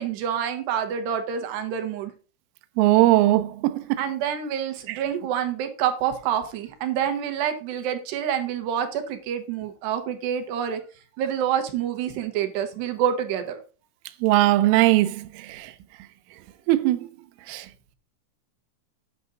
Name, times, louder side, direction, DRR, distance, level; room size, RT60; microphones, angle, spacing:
voice 1, 0.0-2.1 4.0-10.8 11.2-13.6, right 9 dB, 70° right, 2.8 m, -27 dB
voice 2, 2.8-4.0 14.2-15.1 15.5-15.7 16.7-17.1 17.5-17.6, right 16 dB, 85° right, 3.3 m, -19 dB
9.7 x 6.2 x 3.9 m
omnidirectional pair, 5.7 m